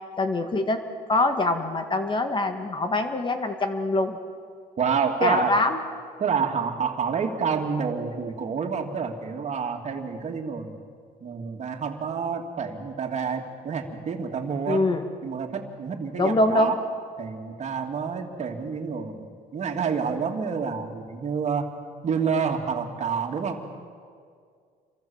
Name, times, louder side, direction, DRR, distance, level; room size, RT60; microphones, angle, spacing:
voice 1, 0.2-0.8 1.1-4.2 5.2-5.8 14.7-15.0 16.2-16.7, left 2 dB, 30° left, 7 dB, 1.9 m, -24 dB
voice 2, 4.8-5.5 6.2-10.7 11.2-14.9 15.2-16.8 17.2-21.7 22.0-23.6, right 6 dB, 45° right, 3 dB, 2.9 m, -28 dB
28.5 x 23.0 x 7.4 m, 2.1 s
cardioid pair, 110°, 17 cm